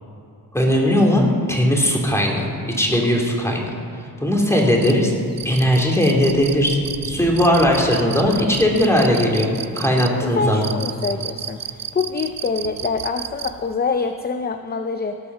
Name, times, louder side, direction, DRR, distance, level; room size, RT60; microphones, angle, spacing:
voice 1, 0.5-3.7 4.2-5.1 5.4-6.8 7.0-9.5 9.7-10.7, equal, 5° left, -1 dB, 2.9 m, -18 dB
sound 1, 4.8-13.7, right 9 dB, 55° right, 0.7 m, -32 dB
voice 2, 10.4-15.2, left 4 dB, 25° left, 7 dB, 0.6 m, -25 dB
18.5 x 7.0 x 6.1 m, 2.6 s
cardioid pair, 85°, 40 cm